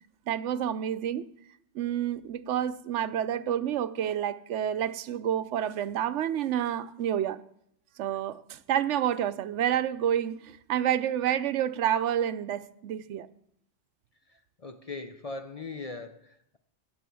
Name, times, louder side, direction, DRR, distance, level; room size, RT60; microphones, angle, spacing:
voice 1, 0.3-1.3 1.7-7.4 8.0-13.3, right 10 dB, 80° right, 0.9 m, -29 dB
voice 2, 14.3-16.6, left 3 dB, 40° left, 0.5 m, -40 dB
15.5 x 6.3 x 6.8 m
omnidirectional pair, 1.2 m